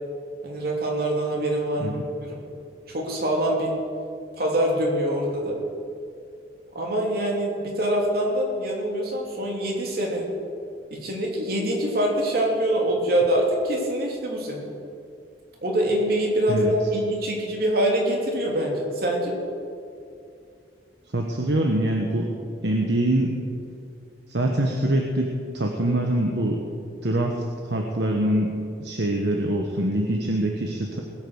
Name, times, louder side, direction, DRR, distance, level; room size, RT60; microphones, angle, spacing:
voice 1, 0.4-2.4 2.9-3.8 4.3-5.6 6.7-7.5 7.8-10.2 10.9-14.7 15.6-19.4, right 1 dB, 55° right, -1 dB, 3.1 m, -24 dB
voice 2, 21.1-22.3 22.6-23.3 24.3-26.6 27.0-28.5 28.8-31.0, right 1 dB, 70° right, 1 dB, 1.2 m, -24 dB
19.5 x 8.6 x 6.4 m, 2.4 s
head